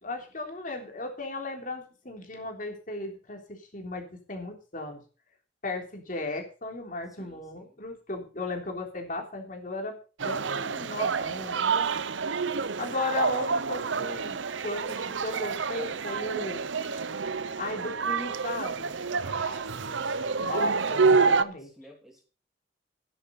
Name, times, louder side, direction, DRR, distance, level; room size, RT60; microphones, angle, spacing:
voice 1, 0.0-5.0 5.6-11.9 12.8-17.0 17.5-18.9 20.4-21.7, left 2 dB, 45° left, 3 dB, 3.5 m, -36 dB
voice 2, 7.2-7.8 19.2-20.5 21.6-22.2, equal, ahead, 1 dB, 2.8 m, -52 dB
sound 1, 10.2-21.4, right 4 dB, 80° right, 0.8 m, -28 dB
12.5 x 10.5 x 5.4 m, 0.37 s
head